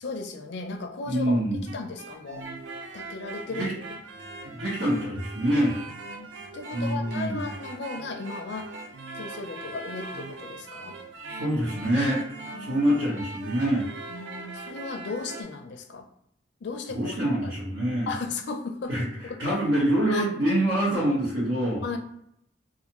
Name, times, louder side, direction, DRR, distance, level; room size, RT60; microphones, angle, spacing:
voice 1, 0.0-1.5 1.7-2.5 2.9-4.0 6.1-8.7 9.1-11.0 12.5-12.9 14.1-16.1 16.6-17.5 18.1-19.6 20.1-20.3 21.8-22.0, left 3 dB, 60° left, 5 dB, 0.4 m, -36 dB
voice 2, 1.0-1.6 3.6-3.7 4.4-5.7 6.7-7.4 11.2-12.2 12.6-13.9 16.9-18.1 18.9-19.1 19.4-21.8, right 1 dB, 85° right, -9 dB, 1.1 m, -25 dB
sound 1, 1.5-15.4, right 3 dB, 70° right, 0.4 m, -41 dB
2.4 x 2.4 x 2.9 m, 0.74 s
head